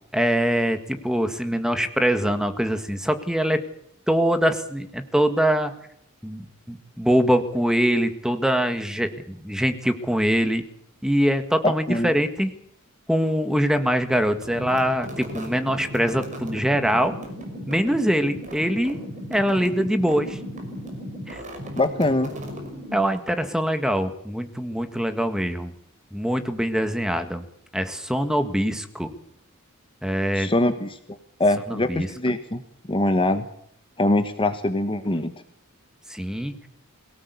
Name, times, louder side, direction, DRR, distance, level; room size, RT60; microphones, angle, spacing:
voice 1, 0.1-3.6 4.1-5.7 6.2-10.6 11.0-12.5 13.1-17.1 17.7-19.0 19.3-20.4 21.3-21.4 22.9-25.7 26.1-27.4 27.7-29.1 30.0-30.5 31.7-32.1 36.1-36.5, equal, 5° right, 9 dB, 1.7 m, -23 dB
voice 2, 11.6-12.1 21.8-22.3 30.3-31.0 31.4-32.6 32.9-33.5 34.0-35.3, left 1 dB, 25° left, 9 dB, 1.1 m, -23 dB
sound 1, 14.3-23.3, equal, 35° right, 5.7 m, -36 dB
22.5 x 18.0 x 8.3 m, 0.69 s
head